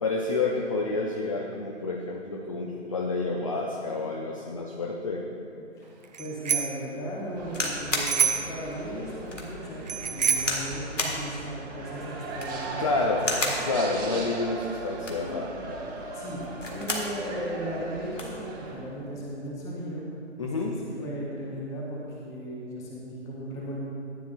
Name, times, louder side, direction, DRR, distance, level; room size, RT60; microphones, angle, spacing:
voice 1, 0.0-5.2 12.8-13.3 13.6-15.5 20.4-20.8, left 3 dB, 30° left, 1 dB, 0.5 m, -29 dB
voice 2, 5.5-5.9 6.2-13.8 16.1-20.0 20.4-23.8, equal, 10° left, -4 dB, 1.0 m, -36 dB
Bicycle bell, 6.1-6.8 8.0-8.6 9.9-10.6, right 6 dB, 35° right, 0.5 m, -26 dB
sound 1, 7.4-18.8, right 2 dB, 20° right, 0.8 m, -38 dB
sound 2, 7.5-8.1 8.7-8.8 9.3-9.5 10.4-10.7 11.0-11.2 12.2-12.6 13.2-13.6 14.9-15.3 16.4-17.1 17.5-17.6 17.8-18.4 19.2-19.5, left 2 dB, 80° left, 1.9 m, -31 dB
13.5 x 9.6 x 2.5 m, 2.8 s
figure-of-eight pair, 140°, 36 cm